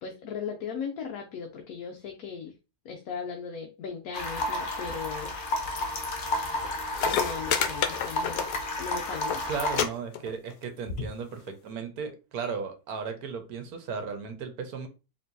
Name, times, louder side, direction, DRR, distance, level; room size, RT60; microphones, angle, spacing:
voice 1, 0.0-2.5 2.8-5.3 7.1-8.4 8.8-9.6 11.0-11.1, left 6 dB, 70° left, 1.1 m, -37 dB
sound 1, 4.1-9.8, left 1 dB, 50° left, 0.6 m, -32 dB
sound 2, 6.6-6.7 6.9-8.9 9.1-9.4 9.7-9.9 10.1-10.6 11.5-11.6, left 8 dB, 90° left, 1.2 m, -28 dB
voice 2, 9.5-14.9, right 6 dB, 70° right, 1.3 m, -35 dB
4.5 x 3.1 x 2.6 m
omnidirectional pair, 1.7 m